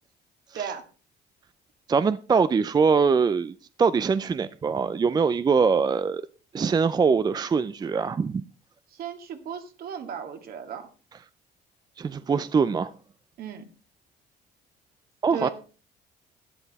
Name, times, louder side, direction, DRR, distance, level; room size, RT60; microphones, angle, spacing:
voice 1, 1.9-6.2 6.5-8.4 12.0-12.9 15.2-15.5, right 5 dB, 25° right, 0.5 m, -23 dB
voice 2, 8.9-10.9 13.4-13.6 15.3-15.5, right 7 dB, 65° right, 2.0 m, -35 dB
12.0 x 10.0 x 4.1 m
cardioid pair, 110°, 17 cm